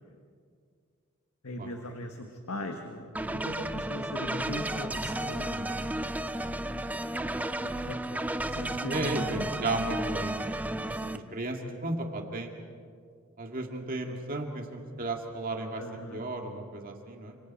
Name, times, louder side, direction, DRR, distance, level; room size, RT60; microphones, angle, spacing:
voice 1, 1.4-5.9 7.6-9.6 10.8-11.4 15.8-16.2, left 1 dB, 90° left, 4 dB, 1.6 m, -40 dB
sound 1, 3.2-11.2, right 1 dB, 5° right, 0.5 m, -33 dB
voice 2, 8.9-10.7 11.1-12.5 13.4-15.8 16.1-17.4, right 2 dB, 40° right, 2 dB, 2.2 m, -34 dB
29.5 x 27.0 x 4.3 m, 2.2 s
head